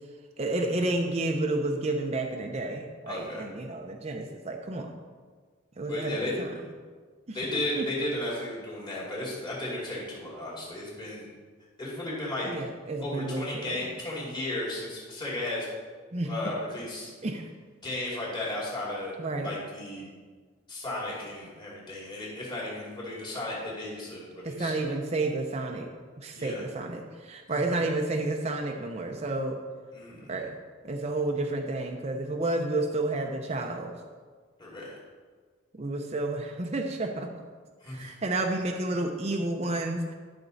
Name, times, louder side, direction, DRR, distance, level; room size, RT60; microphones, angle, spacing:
voice 1, 0.4-4.9 5.8-6.5 7.3-7.4 7.8-7.9 12.5-13.8 16.1-16.5 17.2-17.5 19.2-19.5 24.4-25.9 26.2-29.6 30.3-30.5 30.8-33.9 35.8-37.5 37.9-40.1, right 2 dB, 35° right, 2 dB, 0.7 m, -31 dB
voice 2, 3.1-3.5 5.9-6.3 7.3-11.3 11.8-12.5 13.0-15.7 16.2-17.1 17.8-19.1 19.4-20.1 20.7-24.9 26.3-26.6 27.5-27.8 29.9-30.4 34.6-35.0 37.8-38.1, left 1 dB, 25° left, -6 dB, 2.7 m, -34 dB
12.0 x 6.0 x 4.0 m, 1.5 s
head